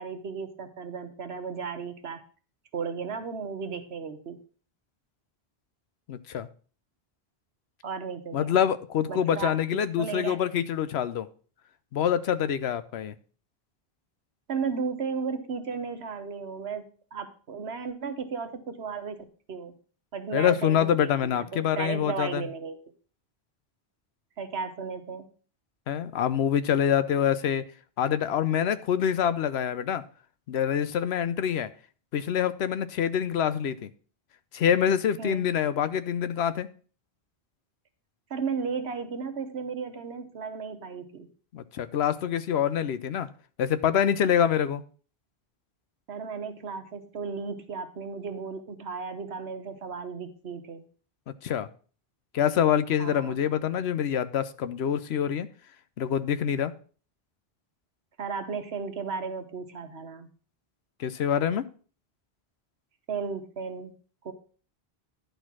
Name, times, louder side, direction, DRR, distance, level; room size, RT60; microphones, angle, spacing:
voice 1, 0.0-2.2 2.7-4.4 7.8-8.6 9.1-10.5 14.5-16.8 17.1-19.7 20.1-22.8 24.4-25.2 35.2-35.5 38.3-41.3 46.1-50.8 53.0-53.4 58.2-60.3 63.1-63.9 64.2-64.3, right 5 dB, 90° right, 7 dB, 1.3 m, -35 dB
voice 2, 6.1-6.5 8.3-11.3 11.9-13.1 20.3-22.5 25.9-27.6 28.0-30.0 30.5-31.7 32.1-33.9 34.5-36.7 41.5-43.3 43.6-44.8 51.4-51.7 52.3-55.5 56.0-56.7 61.0-61.7, left 9 dB, 90° left, 14 dB, 0.9 m, -26 dB
10.5 x 4.3 x 6.0 m, 0.40 s
omnidirectional pair, 1.0 m